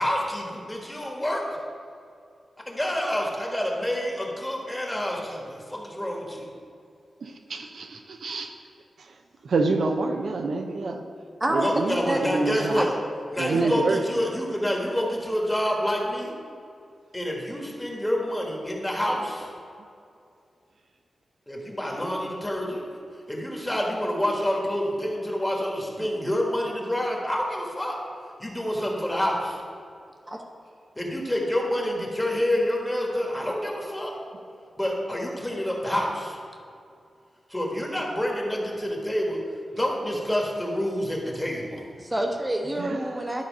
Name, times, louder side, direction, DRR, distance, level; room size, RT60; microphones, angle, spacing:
voice 1, 0.0-1.4 2.7-6.5 11.6-12.9 13.3-16.3 17.1-19.5 21.5-22.8 23.3-28.0 28.4-29.6 30.9-34.1 34.8-36.4 37.5-39.4 39.7-41.8, equal, 15° left, -1 dB, 1.6 m, -28 dB
voice 2, 7.2-8.5 9.0-9.1 9.4-11.0 11.5-12.8 13.4-14.0 26.2-26.3 42.8-43.0, right 3 dB, 75° right, 4 dB, 0.6 m, -27 dB
voice 3, 42.0-43.4, right 1 dB, 20° right, 2 dB, 1.0 m, -27 dB
11.5 x 4.0 x 5.4 m, 2.4 s
wide cardioid pair, 90°, 0 cm